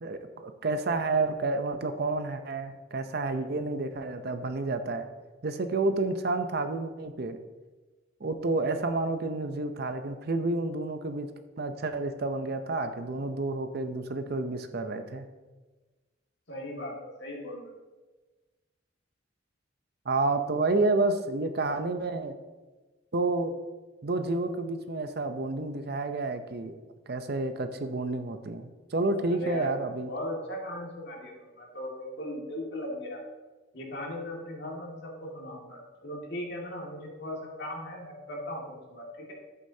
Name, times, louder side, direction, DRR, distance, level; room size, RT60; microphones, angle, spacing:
voice 1, 0.0-5.1 5.4-7.4 8.2-11.3 11.6-15.2 20.1-22.4 23.1-23.6 24.0-26.8 27.1-30.1, right 2 dB, 50° right, 8 dB, 0.6 m, -30 dB
voice 2, 16.5-17.7 29.3-29.7 30.0-33.2 33.7-39.3, left 1 dB, 55° left, -2 dB, 2.0 m, -38 dB
11.0 x 8.5 x 2.8 m, 1.3 s
head